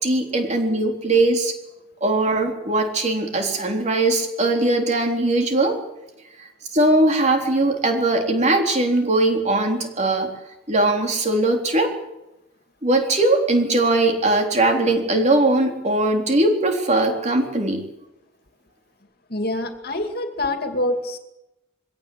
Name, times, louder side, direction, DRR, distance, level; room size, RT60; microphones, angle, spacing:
voice 1, 0.0-1.5 2.0-5.8 6.7-10.3 10.7-11.9 12.8-17.9, right 2 dB, 35° right, 3 dB, 3.7 m, -20 dB
voice 2, 19.3-21.2, left 1 dB, 45° left, 6 dB, 2.5 m, -25 dB
22.5 x 17.5 x 8.6 m, 0.92 s
head